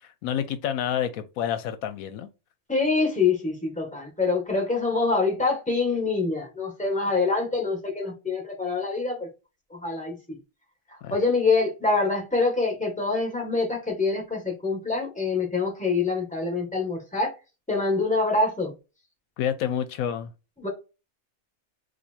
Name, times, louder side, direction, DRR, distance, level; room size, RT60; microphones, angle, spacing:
voice 1, 0.0-2.3 11.0-11.1 19.4-20.3, left 9 dB, 80° left, 1.0 m, -29 dB
voice 2, 2.7-9.3 9.7-10.4 11.1-17.3 17.7-18.7 20.6-20.7, left 3 dB, 5° left, 1.5 m, -25 dB
4.2 x 2.6 x 4.4 m
omnidirectional pair, 1.5 m